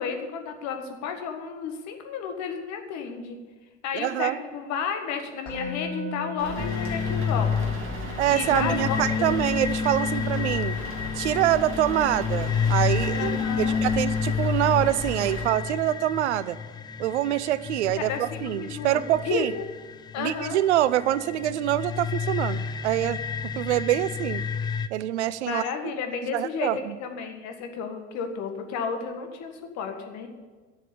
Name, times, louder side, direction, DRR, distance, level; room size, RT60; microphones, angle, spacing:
voice 1, 0.0-3.4 3.8-7.5 8.3-9.1 13.1-13.8 18.0-19.6 20.1-20.6 25.5-26.7 27.0-30.3, left 6 dB, 50° left, 5 dB, 1.8 m, -32 dB
voice 2, 3.9-4.4 8.2-10.8 11.2-16.6 17.0-19.5 20.2-23.2 23.5-24.4 24.9-25.6 26.3-26.9, right 13 dB, 70° right, 17 dB, 0.6 m, -25 dB
Musical instrument, 5.5-16.6, left 2 dB, 75° left, 3.6 m, -41 dB
sound 1, 6.4-15.5, equal, 35° right, 2.9 m, -37 dB
sound 2, 6.6-24.9, left 6 dB, 15° left, 0.3 m, -30 dB
11.0 x 7.1 x 8.6 m, 1.4 s
figure-of-eight pair, 70°, 36 cm